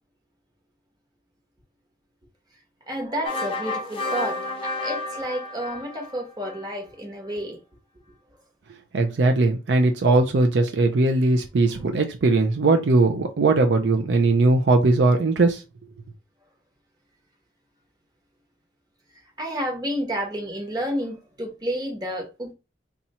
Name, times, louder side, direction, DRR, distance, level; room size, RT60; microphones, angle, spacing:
voice 1, 2.9-7.6 19.4-22.5, equal, 20° right, 1.1 m, -30 dB
sound 1, 3.2-6.7, left 2 dB, 30° left, 0.6 m, -31 dB
voice 2, 8.9-15.6, right 2 dB, 70° right, 0.5 m, -19 dB
2.8 x 2.4 x 4.1 m
head